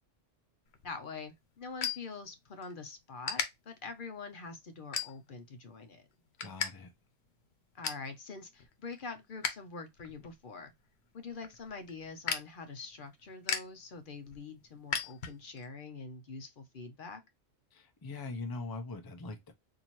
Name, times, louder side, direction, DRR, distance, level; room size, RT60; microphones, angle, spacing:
sound 1, 0.7-2.7 3.2-3.5 4.0-4.3 4.9-5.5 5.9-6.7 7.0-7.1 7.4-8.1 8.5-9.6 9.9-15.7, left 6 dB, 75° left, 1.1 m, -38 dB
voice 1, 0.8-6.1 7.7-10.7 11.1-17.2, left 4 dB, 55° left, 0.8 m, -45 dB
voice 2, 6.4-6.9 17.7-19.5, left 3 dB, 25° left, 0.5 m, -41 dB
4.3 x 2.7 x 2.9 m
omnidirectional pair, 1.1 m